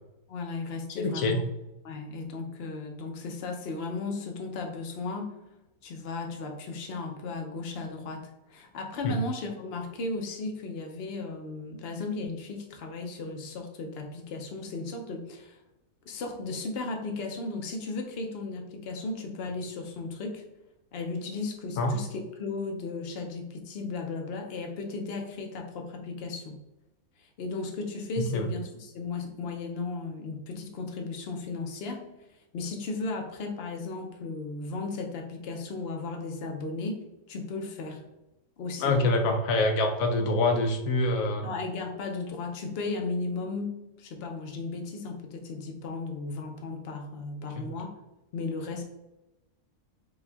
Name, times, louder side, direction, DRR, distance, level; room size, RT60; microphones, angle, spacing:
voice 1, 0.3-1.4 1.8-5.3 5.8-15.6 16.1-20.4 20.9-26.6 27.2-32.1 32.5-37.0 37.3-38.0 38.6-38.9 41.4-47.9 48.3-48.8, left 3 dB, 55° left, 3 dB, 0.8 m, -35 dB
voice 2, 1.0-1.4 9.0-9.2 21.8-22.0 28.2-28.5 38.8-41.5 47.6-47.7, left 2 dB, 75° left, 4 dB, 1.1 m, -25 dB
5.3 x 2.4 x 3.4 m, 0.96 s
omnidirectional pair, 1.5 m